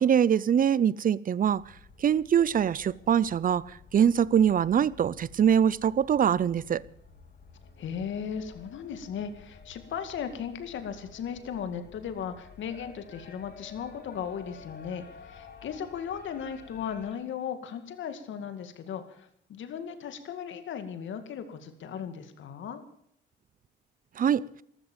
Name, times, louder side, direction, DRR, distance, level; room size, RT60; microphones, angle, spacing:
voice 1, 0.0-1.6 2.0-6.8 24.2-24.6, right 8 dB, 45° right, 0.6 m, -23 dB
sound 1, 1.4-17.1, left 4 dB, 55° left, 5.2 m, -52 dB
voice 2, 7.8-22.8, left 8 dB, 75° left, 2.2 m, -37 dB
14.5 x 13.5 x 7.2 m
cardioid pair, 90°, 20 cm